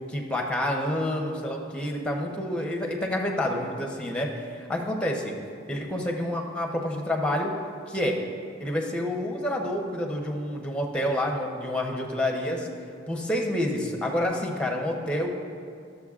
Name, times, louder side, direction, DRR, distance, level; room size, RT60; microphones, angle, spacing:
voice 1, 0.1-4.3 4.7-5.3 5.7-7.5 7.9-8.2 8.6-12.7 13.1-15.3, left 1 dB, 5° left, 1 dB, 0.7 m, -28 dB
14.0 x 6.8 x 2.4 m, 2.3 s
head